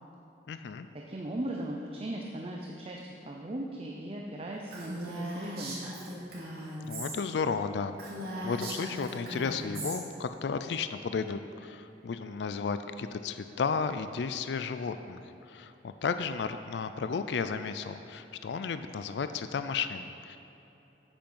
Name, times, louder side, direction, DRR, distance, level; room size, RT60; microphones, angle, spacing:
voice 1, 0.5-0.9 6.8-8.0 8.4-15.2 15.5-20.4, left 5 dB, 70° left, 10 dB, 0.4 m, -33 dB
voice 2, 1.1-6.0, right 1 dB, 35° right, 0 dB, 0.6 m, -38 dB
Female speech woman speaking, 4.7-7.2 7.5-7.6 8.0-10.0, right 1 dB, 60° right, 2.5 m, -38 dB
8.8 x 7.8 x 5.5 m, 3.0 s
head